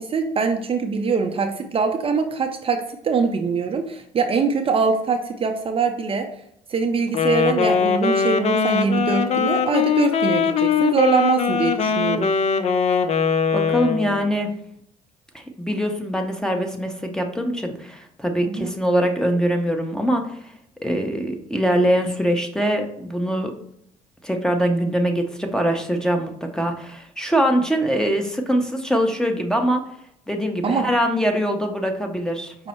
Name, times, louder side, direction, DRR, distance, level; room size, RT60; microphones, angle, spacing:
voice 1, 0.0-6.3 6.7-12.3 18.4-18.7 30.6-30.9 32.6-32.7, right 5 dB, 35° right, 4 dB, 0.5 m, -23 dB
Wind instrument woodwind instrument, 7.1-14.3, left 6 dB, 45° left, 0.5 m, -21 dB
voice 2, 13.5-14.5 15.3-20.5 20.8-23.5 24.2-29.8 30.3-32.5, equal, 5° left, 4 dB, 0.8 m, -23 dB
5.3 x 2.1 x 4.2 m, 0.72 s
supercardioid pair, 70°, 15 cm